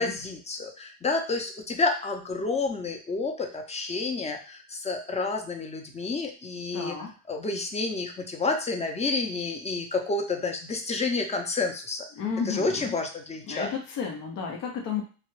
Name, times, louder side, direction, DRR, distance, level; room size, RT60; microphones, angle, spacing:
voice 1, 0.0-7.0 7.3-12.1 12.5-13.7, left 3 dB, 20° left, 4 dB, 0.5 m, -29 dB
voice 2, 6.7-7.1 12.2-12.9 13.5-15.0, left 6 dB, 90° left, 1 dB, 0.7 m, -32 dB
2.2 x 2.0 x 3.0 m, 0.38 s
cardioid pair, 95°, 32 cm